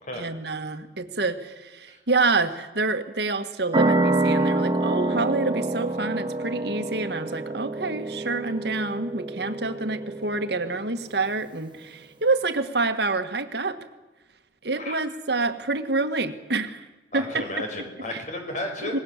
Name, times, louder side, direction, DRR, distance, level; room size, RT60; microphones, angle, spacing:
voice 1, 0.1-13.8 14.6-16.9 17.1-17.5 18.1-18.2 18.8-19.0, right 3 dB, 60° right, 8 dB, 1.6 m, -27 dB
sound 1, 3.7-10.9, right 2 dB, 25° right, 1.1 m, -27 dB
voice 2, 17.1-18.9, left 1 dB, 40° left, 3 dB, 5.4 m, -33 dB
26.0 x 20.5 x 7.4 m, 1.1 s
head